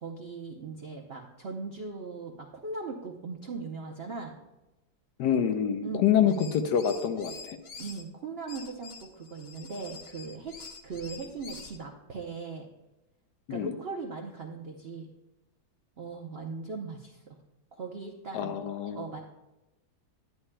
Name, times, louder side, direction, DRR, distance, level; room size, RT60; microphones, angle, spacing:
voice 1, 0.0-4.3 5.8-6.3 7.8-12.7 13.5-15.1 16.0-17.4 17.7-18.6 19.0-19.2, right 4 dB, 70° right, 0 dB, 0.5 m, -39 dB
voice 2, 5.2-7.6 13.5-13.7 18.3-19.0, left 8 dB, 75° left, 7 dB, 1.2 m, -26 dB
sound 1, 6.2-8.0 8.5-11.8, left 4 dB, 90° left, 0.5 m, -46 dB
11.0 x 9.6 x 2.2 m, 0.98 s
omnidirectional pair, 2.0 m